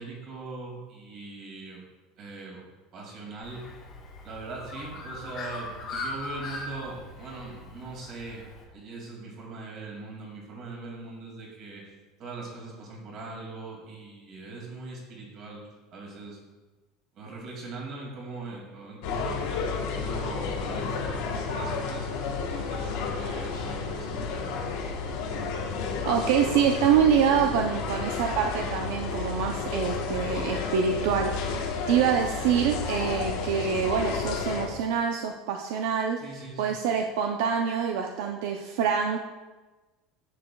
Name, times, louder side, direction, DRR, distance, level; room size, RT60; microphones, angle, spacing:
voice 1, 0.0-1.8 2.2-2.6 2.9-3.7 4.2-11.8 12.2-15.6 15.9-16.4 17.1-19.4 19.9-22.1 22.5-24.7 36.2-36.8, right 3 dB, 35° right, -2 dB, 2.2 m, -41 dB
Bird, 3.4-8.6, left 2 dB, 30° left, 1.1 m, -40 dB
sound 1, 19.0-34.7, left 5 dB, 65° left, 1.0 m, -31 dB
voice 2, 26.0-31.6 31.9-36.2 36.6-39.2, right 7 dB, 70° right, 3 dB, 0.5 m, -25 dB
10.0 x 6.8 x 2.2 m, 1.2 s
cardioid pair, 170°, 0 cm